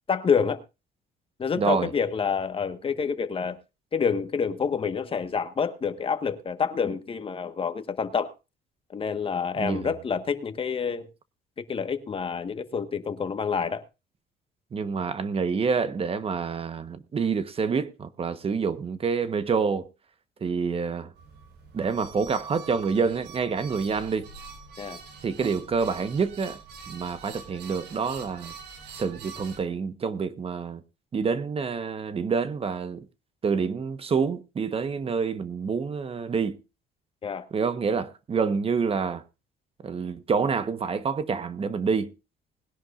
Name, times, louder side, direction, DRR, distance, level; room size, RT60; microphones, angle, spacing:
voice 1, 0.1-0.6 1.4-3.6 3.9-8.3 8.9-11.1 11.7-13.8 24.8-25.0 37.2-37.5, left 6 dB, 30° left, 1.4 m, -27 dB
voice 2, 1.6-1.9 9.6-9.9 14.7-19.9 20.4-21.1 21.7-24.3 25.2-26.6 26.9-28.5 28.9-30.8 31.1-33.1 33.4-36.6 37.5-39.2 39.8-42.1, right 5 dB, 35° right, 1.1 m, -27 dB
sound 1, 21.1-29.6, right 5 dB, 85° right, 5.4 m, -44 dB
20.5 x 11.0 x 2.5 m
cardioid pair, 110°, 17 cm